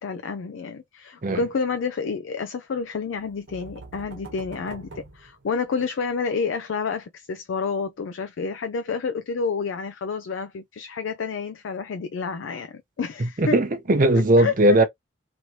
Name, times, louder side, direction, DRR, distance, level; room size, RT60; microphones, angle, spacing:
voice 1, 0.0-13.6 14.1-14.5, left 5 dB, 85° left, 0.4 m, -29 dB
sound 1, 3.1-6.0, right 3 dB, 80° right, 1.1 m, -44 dB
voice 2, 13.4-14.8, right 1 dB, 45° right, 0.6 m, -18 dB
3.1 x 2.7 x 2.9 m
head